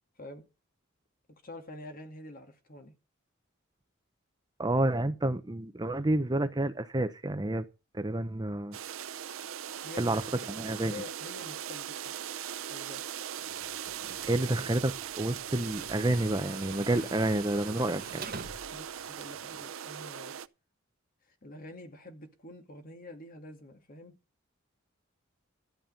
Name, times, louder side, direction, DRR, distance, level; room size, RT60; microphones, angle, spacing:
voice 1, 0.2-0.5 1.4-2.9 9.8-10.2 10.8-12.1 12.7-13.0 18.7-20.3 21.3-24.1, left 1 dB, 45° left, 2.2 m, -47 dB
voice 2, 4.6-7.6 7.9-8.8 10.0-10.2 10.5-11.0 14.3-18.2, right 1 dB, 20° right, 0.7 m, -29 dB
sound 1, 8.7-20.5, right 9 dB, 70° right, 0.6 m, -40 dB
Tools, 13.4-19.6, right 4 dB, 45° right, 1.5 m, -47 dB
13.0 x 5.5 x 9.0 m
head